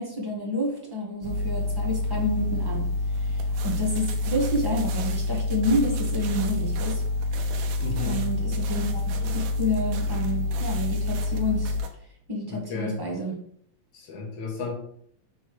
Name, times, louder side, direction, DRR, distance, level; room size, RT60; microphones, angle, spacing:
voice 1, 0.0-7.0 8.0-11.8 12.3-13.4, left 1 dB, 20° right, -3 dB, 0.7 m, -29 dB
sound 1, 1.2-11.8, left 2 dB, 55° right, 1.7 m, -27 dB
sound 2, 3.1-11.9, right 7 dB, 85° right, 2.1 m, -43 dB
voice 2, 7.8-8.2 12.5-13.0 13.9-14.8, left 4 dB, 80° left, -1 dB, 2.7 m, -33 dB
6.9 x 3.9 x 4.7 m, 0.65 s
omnidirectional pair, 3.3 m